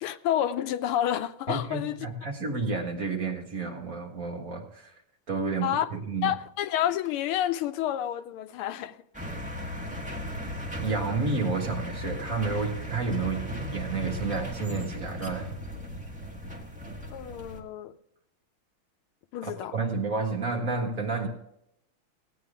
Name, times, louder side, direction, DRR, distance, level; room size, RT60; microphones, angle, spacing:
voice 1, 0.0-2.0 5.6-5.9 6.2-9.0 17.1-17.9 19.3-19.7, left 11 dB, 90° left, 1.6 m, -29 dB
voice 2, 1.5-4.9 5.3-6.3 10.8-15.5 19.4-21.3, right 4 dB, 40° right, 2.0 m, -31 dB
sound 1, 9.1-17.6, equal, 5° right, 1.3 m, -36 dB
17.0 x 9.3 x 3.6 m
omnidirectional pair, 2.4 m